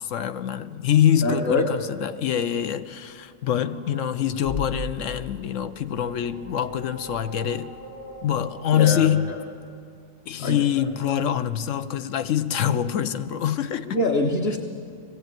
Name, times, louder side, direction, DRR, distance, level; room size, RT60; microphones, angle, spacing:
voice 1, 0.0-7.7 8.2-9.3 10.3-14.0, left 9 dB, 85° left, 1.1 m, -25 dB
voice 2, 1.2-1.7 8.7-9.1 10.4-10.6 13.9-14.6, left 2 dB, 50° left, 1.4 m, -23 dB
sound 1, 3.5-9.3, left 1 dB, 70° left, 7.0 m, -39 dB
20.5 x 15.5 x 9.1 m
omnidirectional pair, 1.3 m